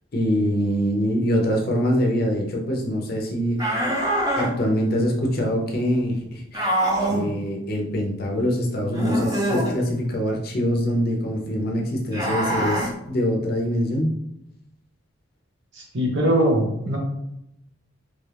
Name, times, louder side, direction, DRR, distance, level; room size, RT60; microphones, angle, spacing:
voice 1, 0.1-3.6 4.4-6.7 7.0-14.1, equal, 50° left, 0 dB, 0.6 m, -24 dB
sound 1, 3.6-4.5 6.5-7.3 8.9-9.7 12.1-12.9, right 1 dB, 20° right, 0.6 m, -23 dB
voice 2, 15.7-17.0, right 1 dB, 60° right, 0 dB, 0.9 m, -21 dB
3.1 x 2.4 x 3.3 m, 0.81 s
head